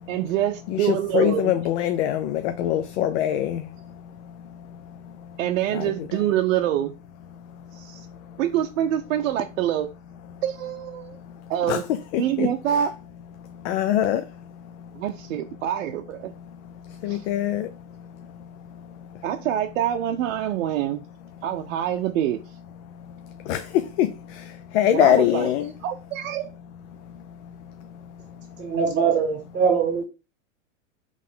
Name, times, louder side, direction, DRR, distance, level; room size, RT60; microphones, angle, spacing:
voice 1, 0.1-1.5 5.4-6.9 7.7-8.1 8.4-9.9 10.4-11.2 11.5-11.8 12.2-12.9 14.9-16.3 17.1-17.3 19.2-21.0 21.4-22.4 24.9-25.5 25.8-26.5, right 11 dB, 75° right, 0.5 m, -25 dB
voice 2, 0.7-5.4 5.7-6.1 7.5-8.4 10.3-10.4 11.0-11.8 12.1-12.8 13.4-15.0 16.5-19.3 22.9-25.7 27.1-28.7, left 11 dB, 60° left, 0.5 m, -27 dB
voice 3, 28.6-30.0, right 6 dB, 30° right, 1.8 m, -22 dB
3.7 x 3.1 x 3.7 m
hypercardioid pair, 125°, 39 cm